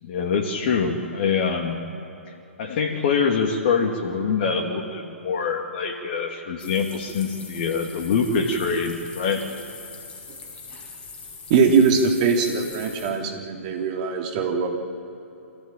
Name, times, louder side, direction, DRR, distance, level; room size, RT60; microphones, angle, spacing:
voice 1, 0.0-1.8 2.6-9.4, left 5 dB, 40° left, 1 dB, 2.6 m, -24 dB
sound 1, 6.6-13.1, left 4 dB, 15° left, 5.1 m, -41 dB
voice 2, 11.5-14.7, right 5 dB, 35° right, 2 dB, 3.5 m, -21 dB
26.0 x 16.5 x 9.0 m, 3.0 s
figure-of-eight pair, 125°, 7 cm